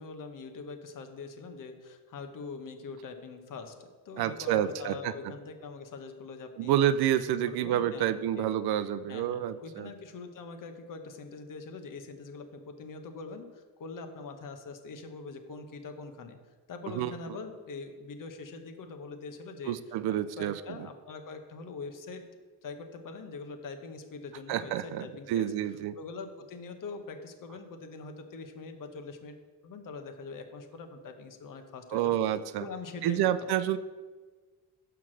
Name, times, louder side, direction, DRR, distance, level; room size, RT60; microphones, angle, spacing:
voice 1, 0.0-6.8 7.5-8.5 9.1-16.4 16.7-19.8 20.4-22.3 22.6-25.5 25.9-29.4 29.6-32.2 32.6-33.5, left 4 dB, 50° left, 7 dB, 1.0 m, -43 dB
voice 2, 4.2-5.1 6.6-9.9 16.9-17.1 19.7-20.6 24.5-25.9 31.9-32.6 33.0-33.8, right 11 dB, 65° right, 14 dB, 0.5 m, -29 dB
5.7 x 4.6 x 6.2 m, 1.4 s
cardioid pair, 90°, 41 cm